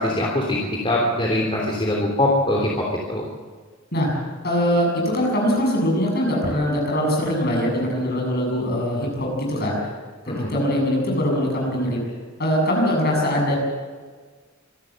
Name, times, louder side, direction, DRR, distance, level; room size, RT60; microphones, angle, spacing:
voice 1, 0.0-2.7 3.1-3.2 10.3-10.5, left 1 dB, 25° left, -2 dB, 3.2 m, -22 dB
voice 2, 4.4-9.8 10.5-12.0 12.4-13.6, equal, 50° left, -1 dB, 7.8 m, -22 dB
25.5 x 13.0 x 7.7 m, 1.5 s
head